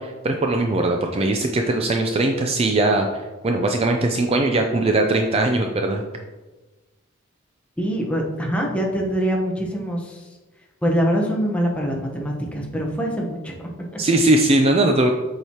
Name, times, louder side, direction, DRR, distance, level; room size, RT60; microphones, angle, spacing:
voice 1, 0.0-6.0 14.0-15.1, right 2 dB, 30° right, 3 dB, 0.4 m, -20 dB
voice 2, 7.8-10.3 10.8-13.5 13.9-14.0, equal, 5° left, -1 dB, 1.0 m, -24 dB
7.8 x 4.7 x 2.9 m, 1.2 s
head